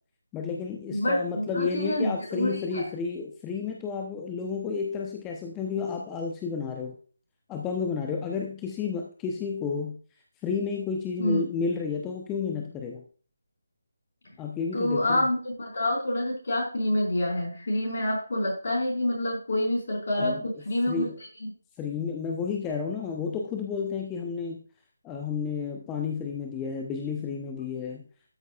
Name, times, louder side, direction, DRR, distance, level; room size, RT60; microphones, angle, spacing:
voice 1, 0.3-6.9 7.5-10.0 10.4-13.0 14.4-15.3 20.1-20.4 20.9-21.2 21.8-24.6 25.0-28.0, left 5 dB, 15° left, 1 dB, 0.8 m, -31 dB
voice 2, 0.9-2.8 11.2-11.4 14.7-21.1 21.4-21.5, left 1 dB, 55° left, -1 dB, 4.8 m, -27 dB
13.0 x 6.7 x 2.4 m, 0.40 s
figure-of-eight pair, 155°, 0 cm